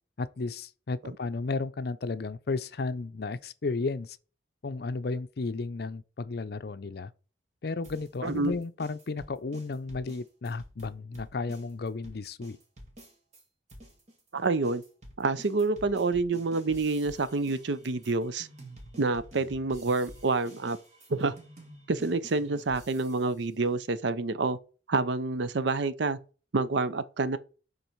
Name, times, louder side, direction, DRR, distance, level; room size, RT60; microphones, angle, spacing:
voice 1, 0.2-4.2 4.6-7.1 7.6-12.6, left 3 dB, 55° left, 0.5 m, -33 dB
sound 1, 7.8-13.4 13.7-23.4, right 1 dB, 35° right, 2.0 m, -50 dB
voice 2, 8.2-8.5 14.3-14.8 15.2-18.5 19.0-20.8 21.1-21.3 21.9-24.6 24.9-26.2 26.5-27.4, right 3 dB, 70° right, 0.6 m, -28 dB
10.5 x 4.0 x 4.5 m
head